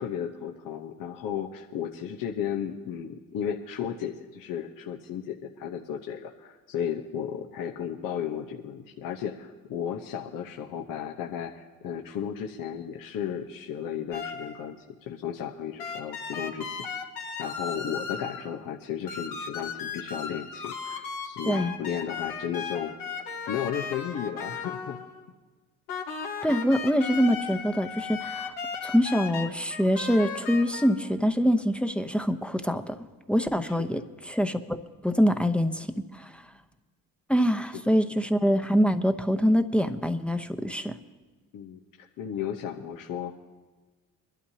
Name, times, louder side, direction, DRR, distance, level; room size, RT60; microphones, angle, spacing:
voice 1, 0.0-16.9 17.4-22.9 23.5-25.0 33.6-34.0 37.8-37.9 41.5-43.3, left 8 dB, 65° left, 2 dB, 1.0 m, -34 dB
sound 1, 14.1-14.6 15.8-18.5 19.1-25.2 25.9-30.9, left 6 dB, 85° left, 1.5 m, -36 dB
voice 2, 26.4-28.5 28.8-33.0 33.3-34.0 34.3-34.8 35.0-36.3 37.3-41.0, equal, 5° left, 6 dB, 0.9 m, -24 dB
23.0 x 12.0 x 2.8 m, 1.3 s
supercardioid pair, 60°, 35 cm